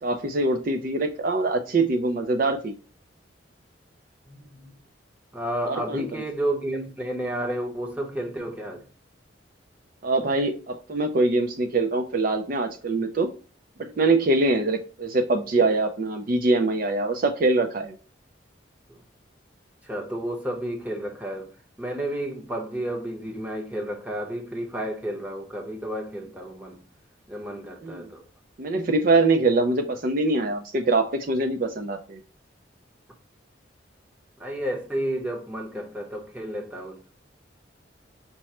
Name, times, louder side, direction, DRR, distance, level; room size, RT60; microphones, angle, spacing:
voice 1, 0.0-2.7 5.7-6.1 10.0-13.3 13.8-17.9 27.8-28.1 28.6-32.2, right 2 dB, 45° right, 0.4 m, -23 dB
voice 2, 4.3-4.7 5.3-8.8 18.9-19.0 19.8-21.5 21.8-26.8 27.3-28.2 34.4-37.0, right 1 dB, 10° right, 0.8 m, -31 dB
5.9 x 2.1 x 4.1 m
head